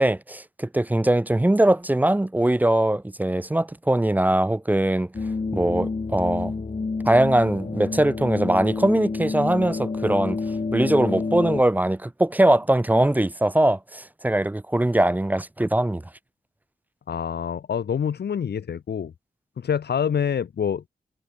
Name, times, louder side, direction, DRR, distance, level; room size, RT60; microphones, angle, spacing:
voice 1, 0.0-5.1 5.5-6.5 7.1-10.4 10.7-16.0, right 1 dB, 10° right, 0.4 m, -21 dB
sound 1, 5.1-11.6, left 4 dB, 40° left, 1.8 m, -29 dB
voice 2, 17.1-19.1 19.6-20.9, left 7 dB, 75° left, 0.7 m, -26 dB
cardioid pair, 70°, 17 cm